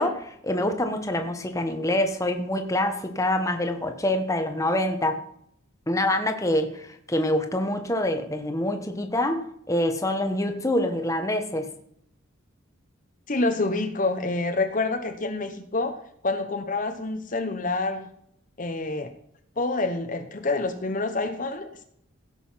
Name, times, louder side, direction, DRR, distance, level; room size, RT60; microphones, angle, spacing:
voice 1, 0.0-5.2 5.9-11.7, left 1 dB, 15° left, 6 dB, 1.2 m, -26 dB
voice 2, 13.3-16.0 16.2-18.1 18.6-19.1 19.6-21.8, left 3 dB, 40° left, 7 dB, 1.0 m, -27 dB
16.0 x 6.7 x 5.7 m, 0.69 s
head